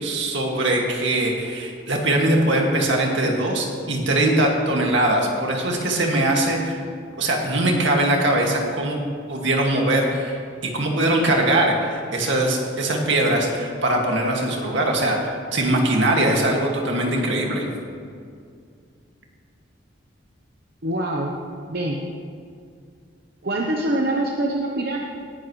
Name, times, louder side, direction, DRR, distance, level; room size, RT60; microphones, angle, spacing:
voice 1, 0.0-6.8 7.2-9.0 9.3-17.7, right 1 dB, 70° right, 0 dB, 2.1 m, -21 dB
voice 2, 20.8-21.3 21.7-22.0 23.4-25.0, right 1 dB, 50° right, -1 dB, 1.0 m, -24 dB
18.5 x 11.0 x 3.2 m, 2.2 s
head